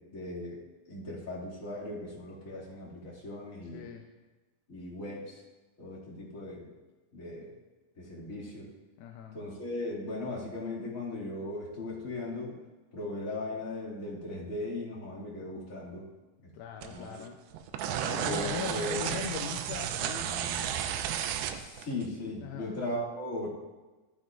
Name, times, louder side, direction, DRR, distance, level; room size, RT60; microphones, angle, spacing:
voice 1, 0.0-3.8 4.7-5.4 5.8-6.7 7.1-7.5 8.0-8.7 9.3-12.5 12.9-16.1 16.4-16.5 16.9-17.2 17.8-19.0 21.5-23.5, left 1 dB, 30° left, -6 dB, 1.6 m, -38 dB
voice 2, 3.7-4.1 9.0-9.4 16.5-17.4 18.0-20.8 22.4-22.8, left 8 dB, 80° left, 2 dB, 2.2 m, -40 dB
sound 1, 16.8-17.2 17.5-22.0, right 9 dB, 85° right, 2.7 m, -33 dB
15.0 x 9.5 x 2.5 m, 1.2 s
omnidirectional pair, 4.8 m